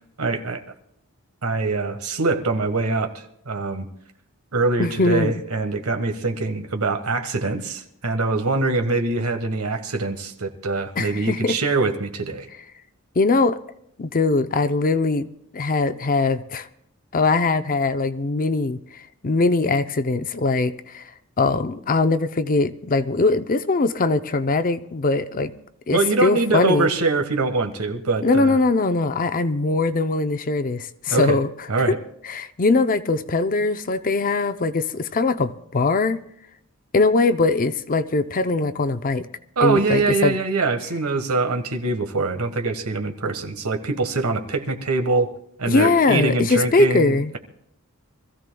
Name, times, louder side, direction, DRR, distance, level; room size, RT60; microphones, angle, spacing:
voice 1, 0.2-0.6 1.4-3.9 4.5-12.5 25.9-28.6 31.1-31.4 31.7-32.0 39.6-45.3 45.6-47.4, right 3 dB, 90° right, 1.4 m, -23 dB
voice 2, 4.8-5.3 11.0-11.6 13.2-13.6 14.0-15.2 15.5-16.7 17.1-21.0 21.4-25.5 25.9-26.9 28.2-31.5 32.3-36.2 36.9-39.3 39.6-40.3 45.7-47.3, left 3 dB, 40° left, 0.6 m, -21 dB
25.0 x 15.0 x 2.3 m
head